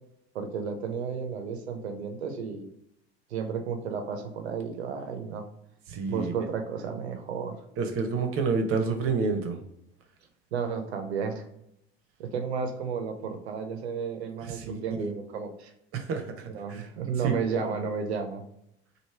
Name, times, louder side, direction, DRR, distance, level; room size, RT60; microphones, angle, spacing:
voice 1, 0.3-2.7 3.3-5.4 6.1-7.6 10.5-11.4 12.2-15.7 16.5-18.4, right 6 dB, 85° right, 6 dB, 0.6 m, -32 dB
voice 2, 5.9-6.3 7.8-9.6 14.4-15.1 15.9-16.8 17.2-17.3 17.6-17.9, right 4 dB, 45° right, 4 dB, 0.7 m, -29 dB
3.2 x 2.6 x 4.3 m, 0.76 s
hypercardioid pair, 80°, 32 cm